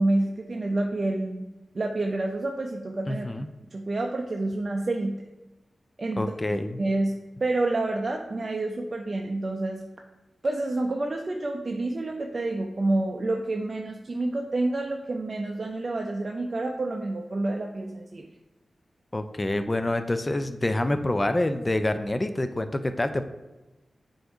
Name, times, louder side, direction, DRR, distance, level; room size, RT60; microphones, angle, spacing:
voice 1, 0.0-1.5 1.7-3.3 3.7-5.2 6.0-6.3 6.8-9.8 10.4-18.3, right 2 dB, 45° right, 2 dB, 0.5 m, -28 dB
voice 2, 3.1-3.5 6.2-6.8 19.1-23.2, left 1 dB, 25° left, 9 dB, 0.4 m, -27 dB
7.9 x 2.7 x 4.8 m, 1.1 s
wide cardioid pair, 75°, 0 cm